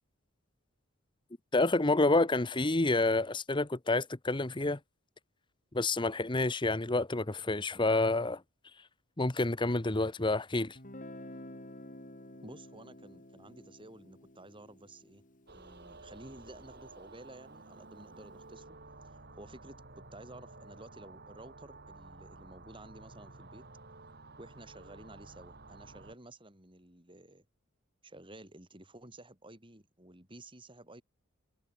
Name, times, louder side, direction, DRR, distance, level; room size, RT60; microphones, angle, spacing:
voice 1, 1.5-4.8 5.7-8.4 9.2-10.8, left 2 dB, 20° left, 1.0 m, -28 dB
Guitar, 10.8-16.5, left 1 dB, 40° left, 4.8 m, -51 dB
voice 2, 12.4-15.2 15.5-18.8 19.3-23.6 24.4-27.4 28.0-31.0, right 1 dB, 25° right, 6.1 m, -52 dB
sound 1, 15.5-26.2, right 2 dB, 50° right, 3.9 m, -52 dB
head